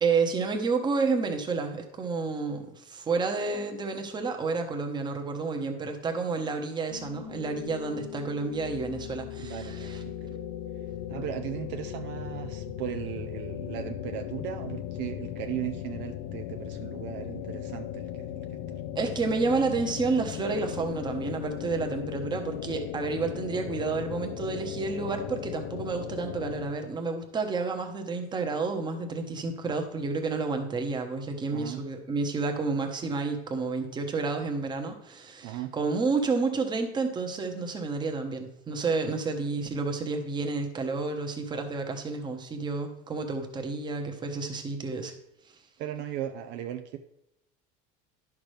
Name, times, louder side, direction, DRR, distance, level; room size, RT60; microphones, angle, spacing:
voice 1, 0.0-10.0 18.9-45.1, right 4 dB, 20° right, 4 dB, 1.1 m, -30 dB
sound 1, 6.9-26.7, left 11 dB, 85° left, 0.6 m, -38 dB
voice 2, 9.4-10.4 11.1-18.8 31.5-31.8 35.4-35.7 45.8-47.0, right 11 dB, 65° right, 7 dB, 0.6 m, -37 dB
10.5 x 6.0 x 3.3 m, 0.82 s
cardioid pair, 135°, 20 cm